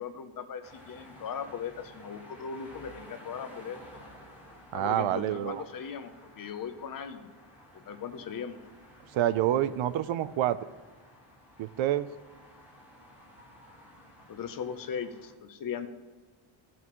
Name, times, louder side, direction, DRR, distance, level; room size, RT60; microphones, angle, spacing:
voice 1, 0.0-3.8 4.7-7.3 7.7-8.6 14.3-15.9, left 7 dB, 45° left, 9 dB, 0.7 m, -38 dB
sound 1, 0.6-15.3, equal, 5° right, 1.7 m, -53 dB
voice 2, 4.7-5.6 9.1-10.6 11.6-12.1, right 12 dB, 70° right, 14 dB, 0.6 m, -27 dB
16.5 x 6.0 x 3.1 m, 1.3 s
cardioid pair, 165°, 49 cm